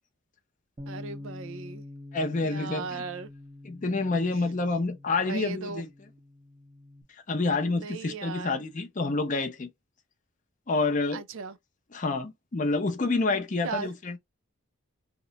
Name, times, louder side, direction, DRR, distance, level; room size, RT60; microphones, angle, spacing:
Bass guitar, 0.8-7.0, left 2 dB, 20° right, 0.7 m, -46 dB
voice 1, 0.9-1.8 2.2-3.3 4.3-4.4 5.2-5.8 7.6-8.6 11.1-11.6 13.6-13.9, right 5 dB, 65° right, 0.4 m, -37 dB
voice 2, 2.1-3.0 3.6-5.9 7.3-9.7 10.7-11.2 11.9-14.2, left 3 dB, 35° left, 0.5 m, -28 dB
2.9 x 2.1 x 4.0 m
head